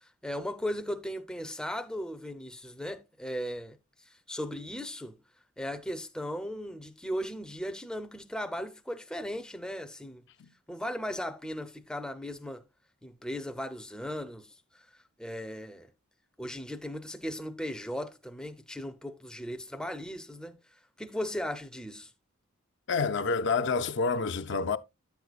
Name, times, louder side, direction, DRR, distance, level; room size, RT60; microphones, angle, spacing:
voice 1, 0.0-3.8 4.1-5.1 5.6-10.2 10.7-12.6 13.0-14.6 15.2-15.9 16.4-20.6 21.0-22.1, equal, 5° left, 0.5 m, -37 dB
voice 2, 22.9-24.8, left 4 dB, 55° left, 0.5 m, -28 dB
9.9 x 8.0 x 2.3 m
head